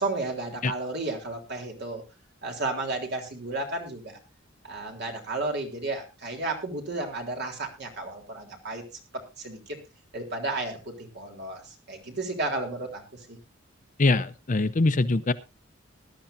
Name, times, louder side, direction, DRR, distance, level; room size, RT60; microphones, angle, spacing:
voice 1, 0.0-2.0 2.4-4.2 4.6-8.8 9.1-9.8 10.1-13.4, right 2 dB, 55° right, 2 dB, 3.5 m, -33 dB
voice 2, 14.0-15.3, left 2 dB, 40° left, 12 dB, 0.7 m, -23 dB
20.0 x 11.5 x 2.6 m, 0.27 s
head